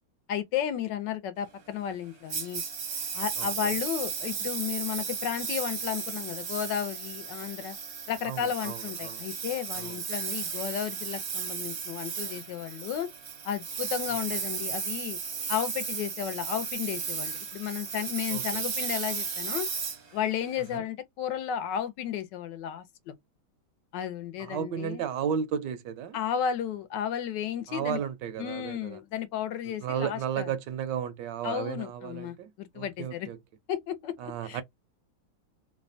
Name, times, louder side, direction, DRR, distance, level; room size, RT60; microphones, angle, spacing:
voice 1, 0.3-2.6 3.1-7.7 8.1-13.1 13.4-15.2 15.5-19.7 20.1-23.1 23.9-25.0 26.1-28.0 28.4-30.5 31.4-33.3 33.7-34.6, left 9 dB, 75° left, 1.2 m, -33 dB
Engine, 2.3-20.8, right 6 dB, 50° right, 0.8 m, -35 dB
voice 2, 3.4-3.7 8.2-9.2 9.7-10.0 18.3-18.6 20.7-20.8 24.4-26.2 27.7-29.0 29.8-33.4 34.2-34.6, right 8 dB, 75° right, 1.1 m, -34 dB
3.2 x 2.1 x 2.5 m
omnidirectional pair, 2.1 m